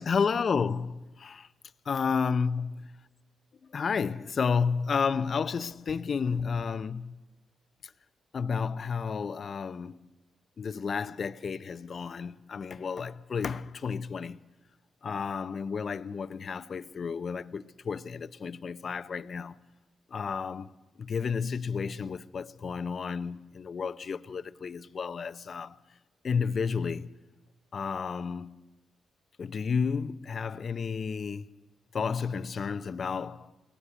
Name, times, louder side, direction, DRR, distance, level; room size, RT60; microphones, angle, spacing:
voice 1, 0.0-1.5 1.9-2.8 3.6-7.2 7.8-7.9 8.3-10.0 10.6-14.4 15.0-19.6 20.1-20.7 21.0-25.8 26.2-27.2 27.7-28.6 29.4-31.6 31.9-33.5, left 5 dB, 55° left, 0.7 m, -31 dB
24.0 x 17.0 x 8.1 m
supercardioid pair, 60°, 0 cm